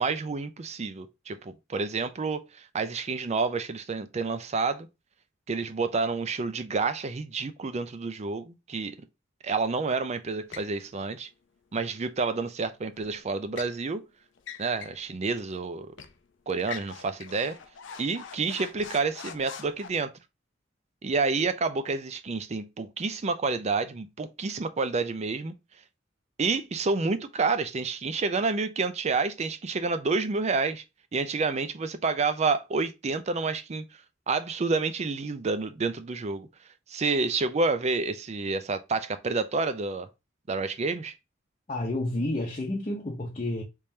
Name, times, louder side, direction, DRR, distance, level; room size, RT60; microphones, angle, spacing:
voice 1, 0.0-4.9 5.5-9.0 9.4-11.3 11.7-14.0 14.6-15.9 16.5-17.6 18.0-20.1 21.0-25.5 26.4-30.8 31.1-33.8 34.3-36.5 36.9-40.1 40.5-41.1, right 4 dB, 35° right, 0.4 m, -29 dB
sound 1, 10.5-10.8 13.0-13.8 14.4-15.0 15.4-15.5 16.0-16.2 16.6-19.9, left 6 dB, 70° left, 0.5 m, -43 dB
voice 2, 41.7-43.6, left 1 dB, 35° left, 0.7 m, -30 dB
3.6 x 3.2 x 2.7 m
head